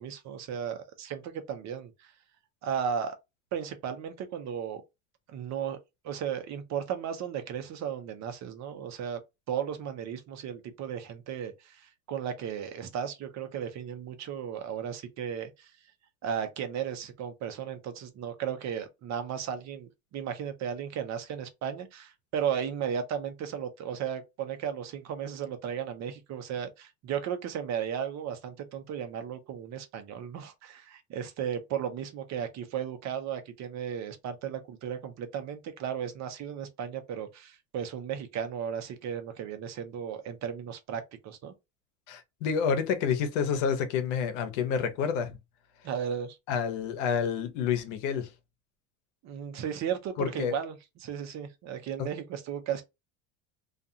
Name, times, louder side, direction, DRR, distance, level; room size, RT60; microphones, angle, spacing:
voice 1, 0.0-2.1 2.6-3.2 3.5-4.8 5.3-5.8 6.0-9.2 9.5-15.7 16.2-41.5 45.8-46.4 49.2-52.8, right 8 dB, 45° right, 0.8 m, -35 dB
voice 2, 42.1-45.4 46.5-48.3 50.2-50.5 52.0-52.1, left 7 dB, 80° left, 0.8 m, -29 dB
2.4 x 2.4 x 2.7 m
supercardioid pair, 100°, 37 cm